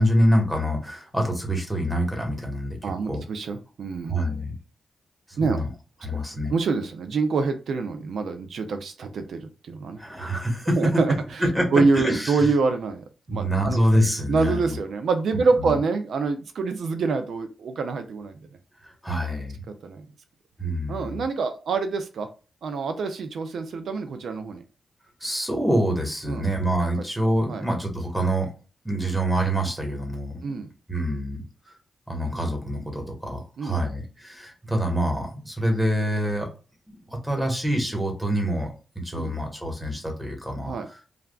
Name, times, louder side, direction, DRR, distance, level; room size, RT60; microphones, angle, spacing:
voice 1, 0.0-3.2 4.1-4.5 5.3-5.7 6.0-6.5 10.0-10.9 11.4-12.5 13.3-14.8 15.6-15.8 18.8-19.7 20.6-21.2 25.2-28.5 28.8-30.6 30.9-31.4 32.1-36.5 36.9-40.8, equal, 5° right, 2 dB, 1.3 m, -26 dB
voice 2, 2.8-4.1 5.4-5.6 6.5-10.0 10.8-11.4 11.7-13.8 14.3-18.4 19.8-20.1 20.9-22.3 22.6-24.6 26.3-26.5 27.5-27.6 30.4-30.7 33.6-33.8 39.1-39.4 40.7-40.9, right 4 dB, 75° right, 7 dB, 0.4 m, -26 dB
3.3 x 2.4 x 2.3 m, 0.34 s
cardioid pair, 60°, 0 cm